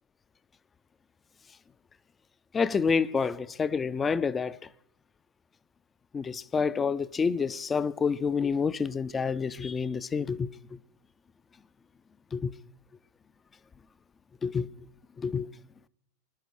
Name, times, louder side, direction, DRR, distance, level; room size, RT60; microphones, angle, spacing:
voice 1, 2.5-4.6 6.1-10.5 12.3-12.5 14.4-14.7 15.2-15.5, left 5 dB, 15° left, 0.4 m, -28 dB
21.5 x 12.0 x 3.1 m
figure-of-eight pair, 90°, 0 cm